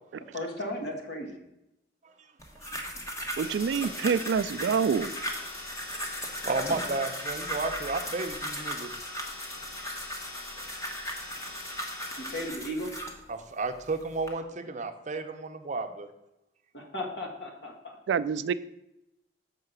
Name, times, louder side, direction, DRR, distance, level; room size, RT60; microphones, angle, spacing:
voice 1, 0.3-1.4 12.3-12.9 16.7-18.0, left 1 dB, 65° left, 2 dB, 1.7 m, -35 dB
sound 1, 2.4-13.2 13.8-14.3, equal, 20° left, 1.1 m, -37 dB
sound 2, 3.4-12.5, left 3 dB, 40° left, 1.4 m, -45 dB
voice 2, 3.4-5.1 18.1-18.5, right 6 dB, 70° right, 16 dB, 0.3 m, -27 dB
voice 3, 6.4-8.9 13.3-16.1, right 3 dB, 45° right, 7 dB, 0.7 m, -32 dB
6.5 x 4.8 x 6.6 m, 0.87 s
head